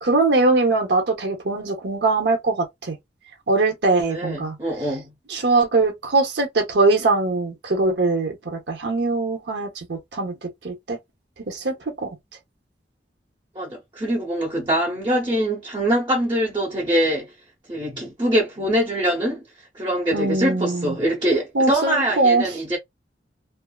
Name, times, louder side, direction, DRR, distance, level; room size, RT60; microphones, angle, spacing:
voice 1, 0.0-3.0 3.5-4.6 5.3-11.0 11.5-11.7 12.0-12.1 20.1-21.0 21.5-22.5, right 3 dB, 70° right, 0.8 m, -21 dB
voice 2, 4.1-5.1 13.5-17.3 17.7-22.8, right 1 dB, 25° right, 0.8 m, -23 dB
2.6 x 2.4 x 2.3 m
head